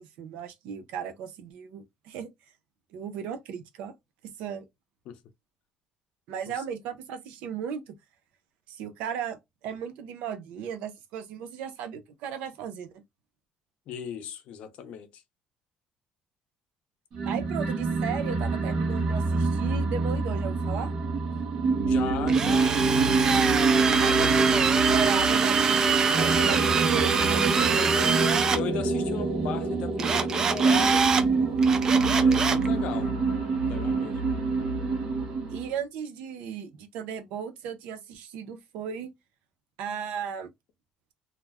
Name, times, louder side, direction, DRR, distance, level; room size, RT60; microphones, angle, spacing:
voice 1, 0.0-2.3 2.9-3.9 4.4-4.6 6.3-7.9 8.7-13.0 17.3-20.9 24.0-27.9 35.5-39.1 39.8-40.5, right 7 dB, 85° right, 0.6 m, -36 dB
voice 2, 13.9-15.2 21.9-22.8 23.2-24.3 28.5-31.1 32.1-33.2 33.5-34.3, left 8 dB, 60° left, 0.6 m, -37 dB
sound 1, 17.1-35.7, right 4 dB, 45° right, 0.8 m, -25 dB
Drill, 22.3-28.6 30.0-31.2 31.6-32.7, right 5 dB, 30° right, 0.3 m, -25 dB
2.4 x 2.1 x 3.3 m
cardioid pair, 155°, 2 cm